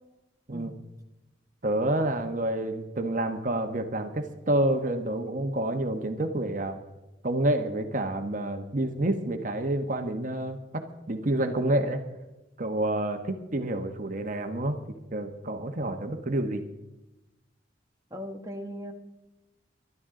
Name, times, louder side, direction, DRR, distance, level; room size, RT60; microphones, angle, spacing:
voice 1, 1.6-6.8 7.2-10.8 11.1-12.0 12.6-14.8 15.1-16.6, right 1 dB, 45° right, 6 dB, 1.2 m, -28 dB
voice 2, 18.1-18.9, equal, 20° right, 2 dB, 1.2 m, -38 dB
22.0 x 12.0 x 3.8 m, 0.98 s
head